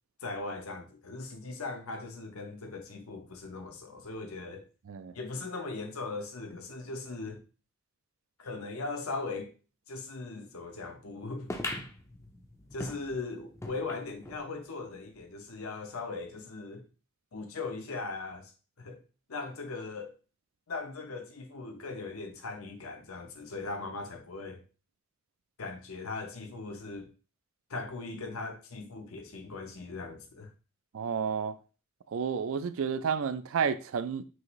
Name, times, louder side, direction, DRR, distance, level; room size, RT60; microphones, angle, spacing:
voice 1, 0.2-4.7 5.1-7.4 8.4-9.5 9.9-11.5 12.7-16.9 17.3-18.5 18.8-19.0 19.3-20.1 20.7-24.6 25.6-27.1 27.7-30.5, left 3 dB, 85° left, 0.8 m, -39 dB
sound 1, 11.5-14.5 14.9-15.0 15.2-15.3 16.1-16.2, left 2 dB, 15° left, 0.4 m, -41 dB
voice 2, 30.9-31.5 32.1-34.2, right 6 dB, 70° right, 0.4 m, -31 dB
6.1 x 2.6 x 3.0 m
head